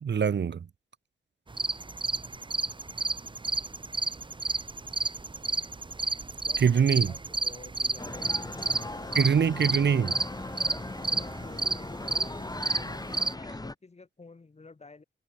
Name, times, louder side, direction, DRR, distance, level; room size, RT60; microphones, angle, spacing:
voice 1, 0.0-0.6 6.6-7.1 9.1-10.1, right 7 dB, 70° right, 1.5 m, -23 dB
sound 1, 1.5-13.3, right 3 dB, 25° right, 1.3 m, -31 dB
voice 2, 6.4-9.2 9.6-10.2 11.0-15.0, left 3 dB, 35° left, 6.5 m, -50 dB
sound 2, 8.0-13.7, left 2 dB, 20° left, 4.8 m, -39 dB
wide cardioid pair, 125°, 19 cm